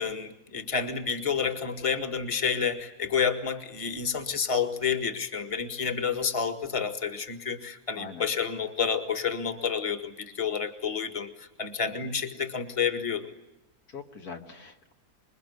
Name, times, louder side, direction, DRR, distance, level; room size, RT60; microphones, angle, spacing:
voice 1, 0.0-13.3, left 6 dB, 20° left, 9 dB, 1.8 m, -29 dB
voice 2, 8.0-8.3 11.8-12.1 13.9-14.9, left 5 dB, 70° left, 4 dB, 2.5 m, -43 dB
26.5 x 22.0 x 9.6 m, 0.94 s
omnidirectional pair, 1.7 m